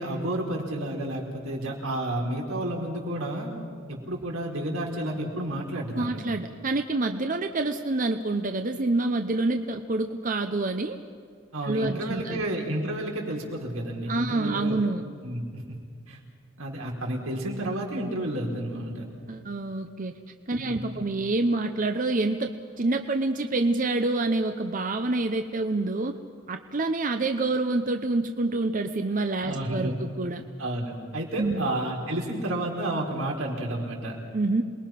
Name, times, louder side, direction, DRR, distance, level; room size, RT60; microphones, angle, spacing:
voice 1, 0.0-3.5 3.9-6.2 11.5-14.8 15.2-15.8 16.1-16.2 16.6-19.0 20.6-21.0 29.4-30.0 30.6-34.2, right 1 dB, 90° right, -1 dB, 4.5 m, -31 dB
voice 2, 5.9-11.0 11.6-12.4 14.1-15.0 19.3-20.2 20.5-26.1 26.5-30.4 31.4-31.7 34.3-34.6, right 2 dB, 40° right, 6 dB, 0.8 m, -27 dB
28.0 x 21.5 x 5.9 m, 2.2 s
head